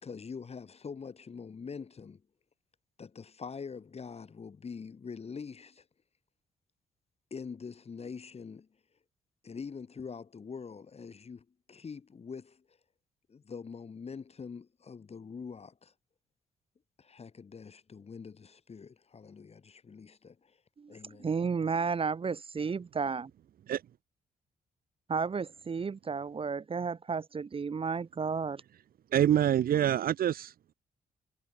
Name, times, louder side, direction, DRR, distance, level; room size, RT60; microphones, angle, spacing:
voice 1, 0.0-2.2 3.0-5.8 7.3-8.7 9.4-12.8 13.3-15.9 17.0-20.6 20.9-21.3, left 5 dB, 40° left, 1.6 m, -44 dB
voice 2, 20.8-23.3 25.1-28.6, right 5 dB, 35° right, 0.8 m, -33 dB
voice 3, 29.1-30.5, right 10 dB, 70° right, 1.0 m, -25 dB
supercardioid pair, 65°, 16 cm